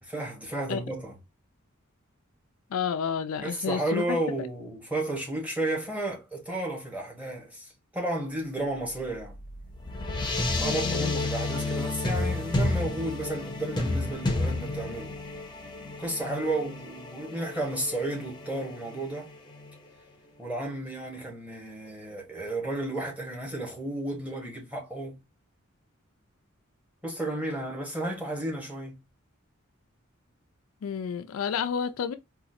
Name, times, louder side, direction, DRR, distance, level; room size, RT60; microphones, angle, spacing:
voice 1, 0.0-1.2 3.4-7.7 7.9-9.3 10.6-15.2 16.0-19.3 20.4-25.2 27.0-29.0, right 1 dB, 5° right, 1.2 m, -32 dB
voice 2, 2.7-4.2 10.7-11.1 30.8-32.1, left 7 dB, 75° left, 0.4 m, -30 dB
sound 1, 8.9-19.7, left 2 dB, 20° left, 0.7 m, -31 dB
4.1 x 2.4 x 2.7 m
head